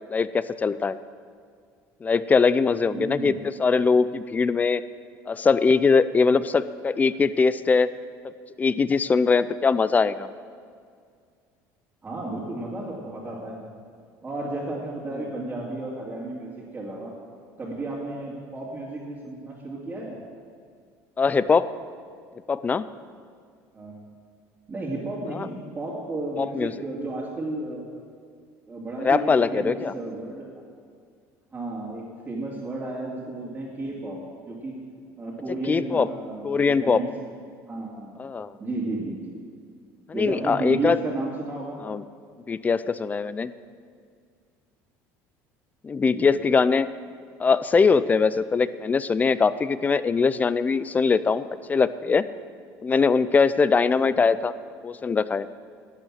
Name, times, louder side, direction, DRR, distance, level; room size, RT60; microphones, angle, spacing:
voice 1, 0.1-1.0 2.0-3.3 3.6-4.8 5.3-7.9 8.6-10.3 21.2-21.7 22.5-22.9 25.3-25.5 26.4-26.7 29.0-29.9 35.7-36.1 36.4-37.0 38.2-38.5 40.1-41.0 41.8-42.0 42.5-43.5 45.8-46.9 47.4-52.3 52.8-54.5 54.8-55.5, left 5 dB, 20° left, 16 dB, 0.4 m, -21 dB
voice 2, 2.9-3.4 12.0-13.7 14.2-17.2 17.6-20.2 23.7-24.1 24.7-27.9 28.6-30.5 31.5-34.8 35.2-37.1 37.7-38.2 38.6-39.4 40.1-41.8 46.0-46.4, right 2 dB, 20° right, -6 dB, 2.5 m, -33 dB
12.0 x 9.0 x 7.6 m, 2.1 s
supercardioid pair, 115°, 7 cm